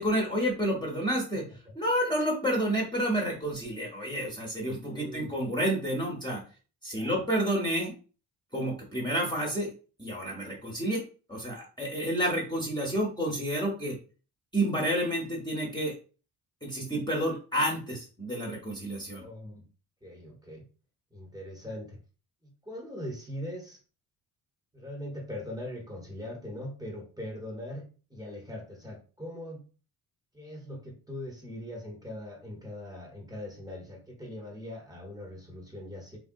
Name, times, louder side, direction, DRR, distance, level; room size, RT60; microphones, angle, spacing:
voice 1, 0.0-1.4 1.7-6.4 6.8-7.9 8.5-9.7 10.0-11.0 11.3-14.0 14.5-15.9 16.6-19.2, right 1 dB, 10° left, -3 dB, 0.9 m, -29 dB
voice 2, 4.8-5.3 6.9-7.2 19.1-19.6 20.0-20.6 21.1-22.0 22.4-23.8 24.7-29.6 30.3-36.2, left 1 dB, 10° right, -1 dB, 1.0 m, -41 dB
3.4 x 2.3 x 2.5 m, 0.35 s
cardioid pair, 105°, 37 cm